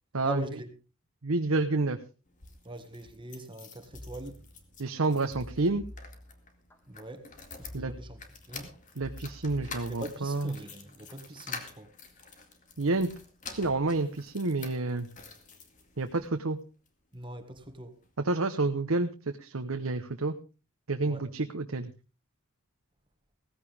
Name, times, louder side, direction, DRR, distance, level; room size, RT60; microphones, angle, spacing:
voice 1, 0.2-0.7 2.6-4.4 6.9-7.2 7.6-8.2 8.5-8.7 9.9-11.9 17.1-18.0 21.0-21.2, equal, 25° right, 1.7 m, -41 dB
voice 2, 1.2-2.0 4.8-5.8 7.7-7.9 9.0-10.5 12.8-13.1 13.5-15.1 16.0-16.6 18.2-20.3 20.9-21.9, right 3 dB, 90° right, 1.0 m, -29 dB
sound 1, 2.2-16.3 16.9-17.7 18.0-18.1 18.3-18.4, left 4 dB, 40° left, 2.2 m, -48 dB
sound 2, 3.9-4.9 5.3-6.8 7.6-8.6 9.0-10.5 10.9-11.2, left 1 dB, 10° left, 1.7 m, -47 dB
17.0 x 15.0 x 3.5 m
head